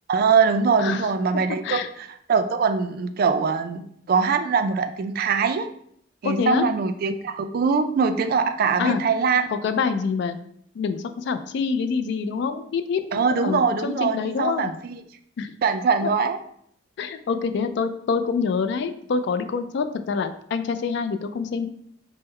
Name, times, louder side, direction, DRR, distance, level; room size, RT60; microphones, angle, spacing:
voice 1, 0.1-5.7 6.2-9.5 13.1-15.0 15.6-16.4, right 5 dB, 55° right, 9 dB, 0.3 m, -22 dB
voice 2, 6.2-6.7 8.8-9.0 9.6-10.4 10.8-14.8 15.4-15.5 16.0-16.1 17.0-21.7, left 5 dB, 65° left, 10 dB, 0.3 m, -26 dB
3.6 x 2.0 x 4.2 m, 0.68 s
head